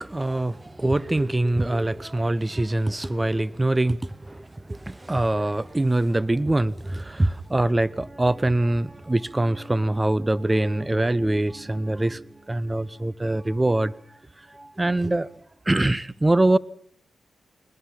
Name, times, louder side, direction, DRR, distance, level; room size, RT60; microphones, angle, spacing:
voice 1, 0.0-14.0 14.4-15.3 15.7-16.6, right 1 dB, 20° right, 0.9 m, -24 dB
Bass guitar, 10.4-14.1, equal, 5° right, 6.8 m, -46 dB
23.0 x 20.5 x 5.8 m
supercardioid pair, 45°, 0 cm